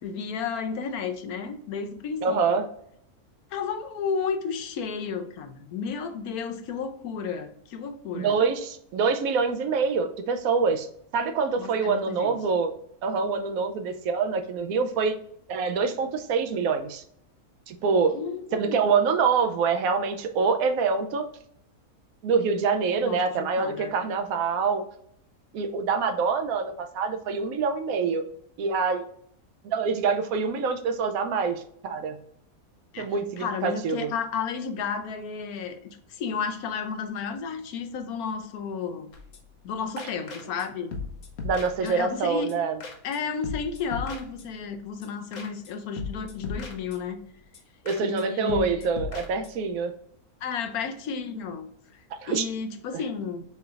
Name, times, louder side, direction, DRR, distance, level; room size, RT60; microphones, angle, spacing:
voice 1, 0.0-2.7 3.5-8.3 11.6-12.4 18.1-18.8 23.0-23.9 32.9-39.1 39.6-40.9 41.8-42.5 43.0-47.2 48.0-48.9 50.4-53.4, left 6 dB, 80° left, 7 dB, 1.2 m, -32 dB
voice 2, 2.2-2.7 8.1-10.9 11.1-12.7 13.0-15.2 15.5-17.0 17.7-18.1 18.5-21.2 22.2-24.8 25.5-28.2 28.6-29.0 29.6-32.2 33.0-34.1 41.4-42.8 47.8-49.9 52.2-52.4 52.9-53.0, right 5 dB, 75° right, 7 dB, 1.0 m, -25 dB
sound 1, 39.1-39.7 40.0-40.7 40.9-42.2 42.5-42.6 42.8-43.2 43.4-44.8 45.0-45.1 45.3-45.7 46.0-47.3 47.5-47.6 47.9-48.2 48.5-49.7, left 4 dB, 60° left, 1.2 m, -38 dB
6.8 x 3.3 x 2.4 m, 0.69 s
omnidirectional pair, 1.6 m